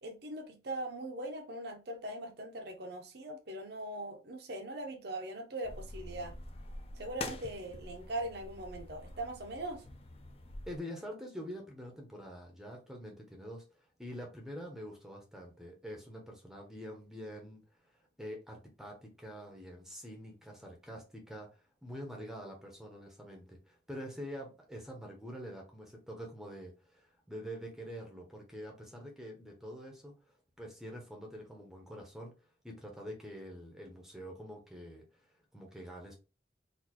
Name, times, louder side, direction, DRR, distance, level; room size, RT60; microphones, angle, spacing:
voice 1, 0.0-6.4 6.9-9.8, right 1 dB, 60° right, 3 dB, 0.7 m, -41 dB
sound 1, 5.6-10.8, left 2 dB, 35° left, 0.5 m, -46 dB
voice 2, 10.7-17.6 17.9-32.3 32.6-36.1, equal, 5° right, 1 dB, 0.7 m, -46 dB
4.1 x 2.5 x 2.9 m, 0.31 s
head